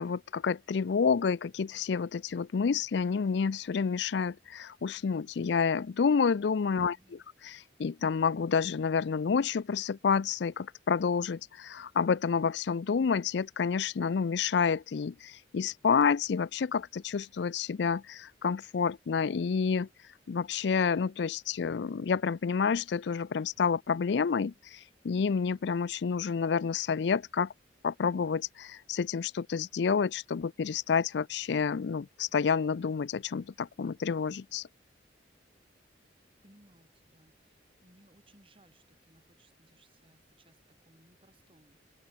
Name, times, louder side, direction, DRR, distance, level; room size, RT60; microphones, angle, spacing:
voice 1, 0.0-6.9 7.4-19.9 20.3-27.5 27.8-34.7, left 6 dB, 60° left, 0.4 m, -29 dB
voice 2, 6.7-7.2 36.0-41.9, right 1 dB, 30° right, 5.9 m, -63 dB
open air
head